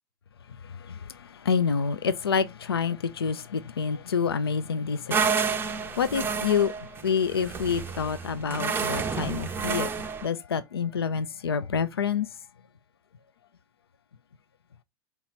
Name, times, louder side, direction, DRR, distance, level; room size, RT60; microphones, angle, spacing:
voice 1, 0.5-12.4, left 6 dB, 80° left, 0.4 m, -28 dB
sound 1, 5.1-10.3, right 5 dB, 15° right, 0.4 m, -30 dB
4.5 x 2.9 x 3.9 m
figure-of-eight pair, 85°, 13 cm